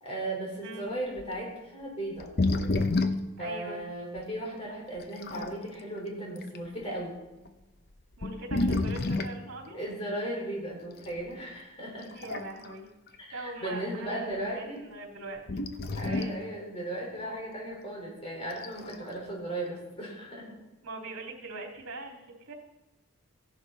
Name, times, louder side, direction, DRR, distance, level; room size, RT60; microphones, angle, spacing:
voice 1, 0.0-2.3 3.4-7.1 9.7-12.1 13.3-14.8 15.9-20.6, right 1 dB, 25° left, -3 dB, 4.5 m, -36 dB
sound 1, 1.2-1.3 2.2-3.3 4.2-4.3 5.0-5.6 6.4-6.6 7.5-7.6 8.1-9.4 11.1-11.2 12.0-12.7 13.1-13.2 15.5-16.4 18.5-19.0, left 2 dB, 45° left, 0.8 m, -29 dB
voice 2, 3.4-3.8 8.2-9.8 12.1-12.8 13.3-15.4 16.0-16.4 20.8-22.5, right 2 dB, 80° right, 0 dB, 3.0 m, -42 dB
15.5 x 11.0 x 4.2 m, 1.0 s
head